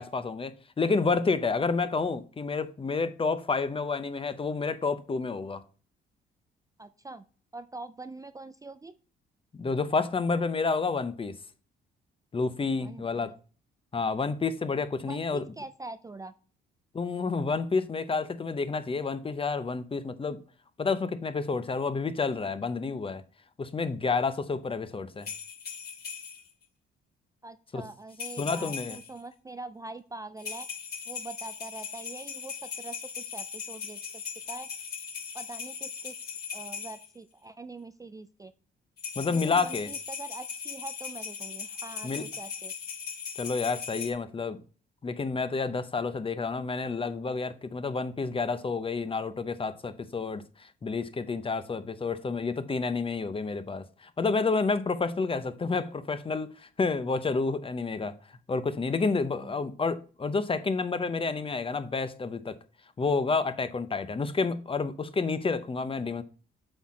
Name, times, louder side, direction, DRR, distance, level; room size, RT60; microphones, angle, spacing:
voice 1, 0.0-5.6 9.5-11.4 12.3-13.3 13.9-15.5 16.9-20.4 20.8-23.2 23.6-25.3 27.7-27.9 28.4-29.0 39.2-39.9 42.0-42.3 43.4-44.6 45.0-58.2 58.5-62.6 63.0-66.2, left 4 dB, 25° left, 0.8 m, -29 dB
voice 2, 6.8-7.2 7.5-8.9 12.8-13.3 15.1-16.3 27.4-30.7 31.1-34.0 34.5-34.7 35.3-36.1 36.5-38.5 39.3-42.7 59.4-59.6, right 2 dB, 15° right, 0.4 m, -43 dB
sound 1, 25.2-26.5 28.1-29.2 30.4-37.1 39.0-44.1, left 6 dB, 55° left, 3.3 m, -39 dB
7.9 x 4.3 x 4.8 m
cardioid pair, 90°, 20 cm